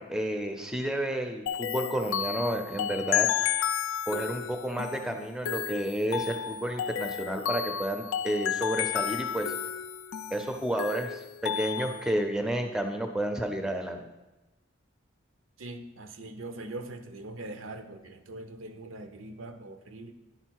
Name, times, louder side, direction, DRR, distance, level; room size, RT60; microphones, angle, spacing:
voice 1, 0.0-3.3 4.1-9.5 10.3-14.1, right 1 dB, 5° right, 5 dB, 0.5 m, -31 dB
sound 1, 1.5-12.1, left 9 dB, 85° left, 0.4 m, -32 dB
voice 2, 15.6-20.1, right 2 dB, 80° right, 8 dB, 0.6 m, -42 dB
10.0 x 4.0 x 4.6 m, 1.0 s
head